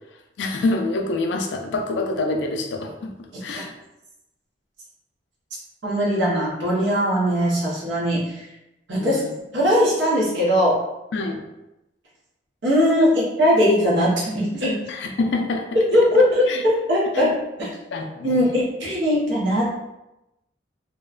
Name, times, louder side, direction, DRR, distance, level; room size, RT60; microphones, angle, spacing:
voice 1, 0.4-3.7 8.9-9.3 11.1-11.4 14.9-15.6 16.5-16.6 17.1-17.3 17.9-18.6, left 2 dB, 65° left, 4 dB, 0.4 m, -26 dB
voice 2, 5.8-8.2 8.9-9.2 9.5-10.8 12.6-14.8 15.9-16.4 16.9-17.3 18.2-19.7, equal, 75° right, -6 dB, 0.8 m, -20 dB
2.7 x 2.1 x 2.4 m, 0.93 s
head